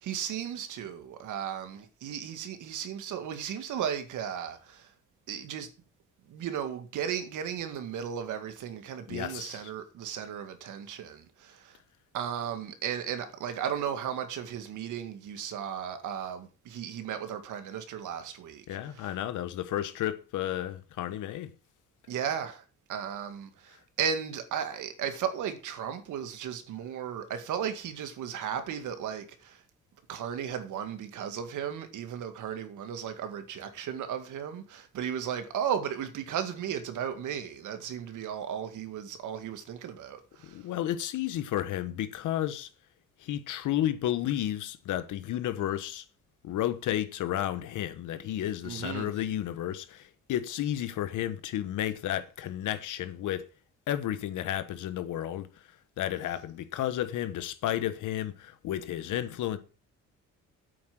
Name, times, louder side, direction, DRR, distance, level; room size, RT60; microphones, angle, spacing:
voice 1, 0.0-4.9 5.3-5.7 6.3-11.8 12.1-19.1 22.1-22.6 22.9-29.6 30.1-40.6 48.6-49.1, right 8 dB, 80° right, 2.0 m, -35 dB
voice 2, 9.1-9.7 18.7-21.5 40.4-42.7 43.2-46.0 46.4-53.5 53.9-55.7 56.0-59.6, left 12 dB, 80° left, 1.3 m, -32 dB
8.7 x 7.6 x 6.0 m
cardioid pair, 90°, 30 cm